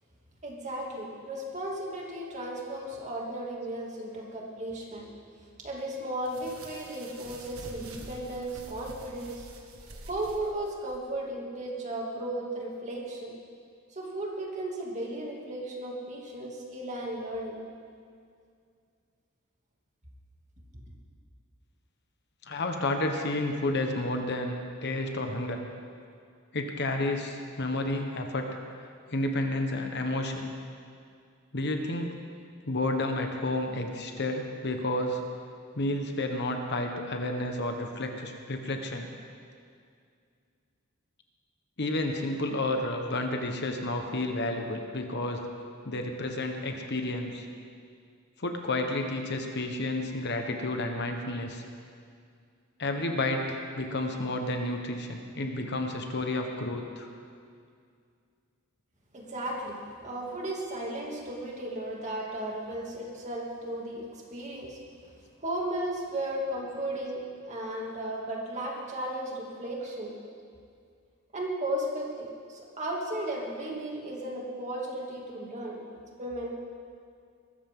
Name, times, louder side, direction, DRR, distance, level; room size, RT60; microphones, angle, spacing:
voice 1, 0.4-5.1 5.6-9.5 9.8-13.3 13.9-17.6 59.1-64.8 65.4-70.1 71.3-75.8 76.2-76.5, right 1 dB, 35° right, -2 dB, 2.6 m, -35 dB
sound 1, 6.2-11.0, right 2 dB, 80° right, 1.7 m, -47 dB
voice 2, 22.5-25.6 26.5-28.5 29.1-30.5 31.5-32.2 32.7-35.2 35.7-39.1 41.8-45.4 45.8-47.4 48.4-51.6 52.8-57.1, left 2 dB, 55° left, 4 dB, 1.3 m, -31 dB
21.0 x 14.0 x 3.8 m, 2.3 s
head